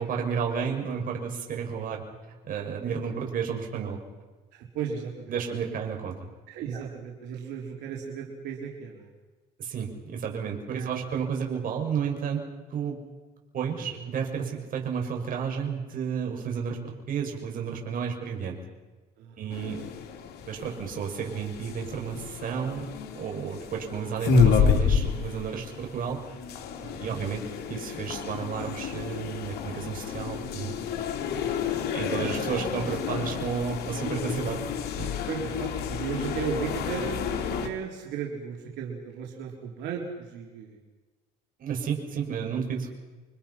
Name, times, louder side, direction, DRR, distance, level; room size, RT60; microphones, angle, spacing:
voice 1, 0.0-2.0 2.4-4.0 5.3-6.2 6.7-6.8 9.6-12.4 12.7-13.0 13.5-18.6 19.4-19.8 20.5-22.9 23.1-26.2 27.0-27.4 27.7-30.7 31.9-34.6 35.0-35.1 41.6-42.9, right 7 dB, 55° right, 2 dB, 6.6 m, -32 dB
voice 2, 2.8-3.2 4.5-5.3 6.5-9.1 10.7-11.2 13.7-14.1 19.2-19.8 24.1-24.2 26.8-27.2 32.1-32.4 35.3-40.8, right 7 dB, 85° right, -1 dB, 4.0 m, -36 dB
sound 1, 19.5-37.7, left 6 dB, 70° left, 3.4 m, -30 dB
30.0 x 24.5 x 5.9 m, 1.3 s
cardioid pair, 110°, 17 cm